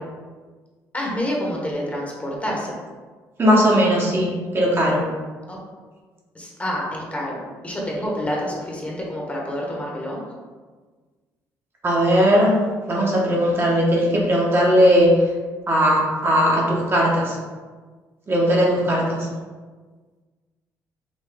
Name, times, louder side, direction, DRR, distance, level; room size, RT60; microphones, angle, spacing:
voice 1, 0.9-2.8 5.5-5.6 6.3-10.2, equal, 20° left, -3 dB, 1.2 m, -28 dB
voice 2, 3.4-5.0 11.8-12.6 12.9-15.1 15.7-17.4 18.3-19.2, equal, 35° right, -3 dB, 1.1 m, -18 dB
5.3 x 2.6 x 3.5 m, 1.4 s
cardioid pair, 90°, 7 cm